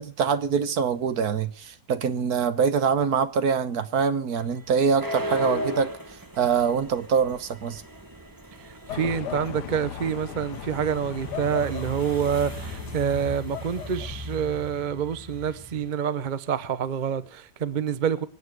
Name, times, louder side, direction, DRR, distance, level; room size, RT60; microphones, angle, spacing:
voice 1, 0.0-5.9 6.4-7.8, right 6 dB, 65° right, 1.5 m, -24 dB
sound 1, 4.4-15.9, equal, 15° right, 1.4 m, -37 dB
voice 2, 8.6-18.3, right 8 dB, 40° right, 0.7 m, -27 dB
sound 2, 8.9-14.4, left 10 dB, 75° left, 1.5 m, -37 dB
25.5 x 8.9 x 4.7 m
omnidirectional pair, 1.8 m